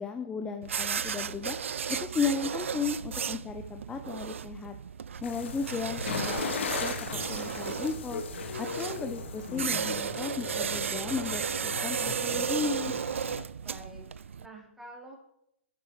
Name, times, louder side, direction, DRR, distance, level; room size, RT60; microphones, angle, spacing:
voice 1, 0.0-1.6 1.9-4.7 5.2-8.2 8.6-12.9, left 5 dB, 15° left, 7 dB, 0.6 m, -35 dB
sound 1, 0.6-14.5, right 7 dB, 75° right, 0.3 m, -34 dB
sound 2, 5.2-13.4, left 5 dB, 65° left, 1.2 m, -38 dB
voice 2, 13.6-15.2, right 1 dB, 5° right, -1 dB, 2.4 m, -48 dB
9.2 x 7.9 x 4.8 m, 0.78 s
figure-of-eight pair, 115°, 7 cm